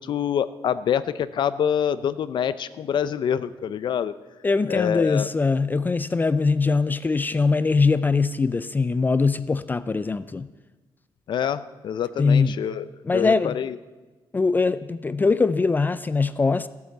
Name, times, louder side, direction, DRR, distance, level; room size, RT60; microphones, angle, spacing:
voice 1, 0.0-4.1 4.7-5.3 11.3-12.9 13.1-13.8, left 8 dB, 60° left, 14 dB, 0.6 m, -26 dB
voice 2, 4.4-10.5 12.2-12.5 13.0-13.6 14.3-16.7, left 4 dB, 20° left, 14 dB, 0.4 m, -22 dB
15.5 x 8.5 x 7.9 m, 1.2 s
cardioid pair, 140°, 9 cm